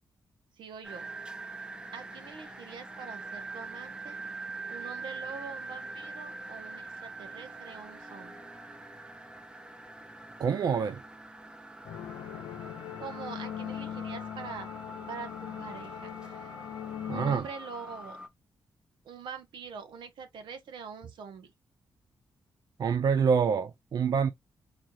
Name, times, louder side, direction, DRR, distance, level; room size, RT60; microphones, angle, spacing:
voice 1, 0.6-1.1 1.9-4.2 4.7-8.4 13.0-14.7 15.1-16.5 17.1-18.2 19.0-21.5, right 6 dB, 85° right, 1.0 m, -44 dB
sound 1, 0.8-18.3, right 3 dB, 10° right, 0.7 m, -44 dB
voice 2, 10.4-11.0 17.1-17.5 22.8-24.3, right 6 dB, 55° right, 0.5 m, -26 dB
sound 2, 11.8-17.4, left 10 dB, 85° left, 0.5 m, -40 dB
4.1 x 2.4 x 3.0 m
cardioid pair, 85°, 8 cm